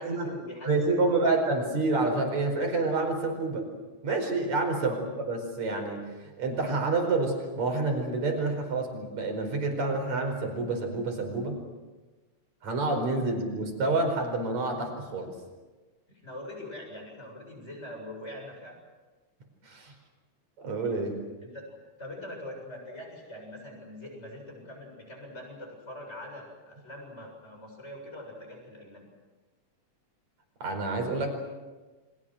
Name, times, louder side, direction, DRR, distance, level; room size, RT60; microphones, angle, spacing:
voice 1, 0.0-1.4 4.9-5.0 16.1-18.8 21.4-21.6 22.0-29.1, left 1 dB, 20° left, 1 dB, 8.0 m, -43 dB
voice 2, 0.7-3.7 4.0-11.6 12.6-15.3 19.6-19.9 20.6-21.2 30.6-31.3, right 3 dB, 65° right, 4 dB, 6.1 m, -28 dB
29.5 x 25.0 x 6.4 m, 1.3 s
omnidirectional pair, 3.4 m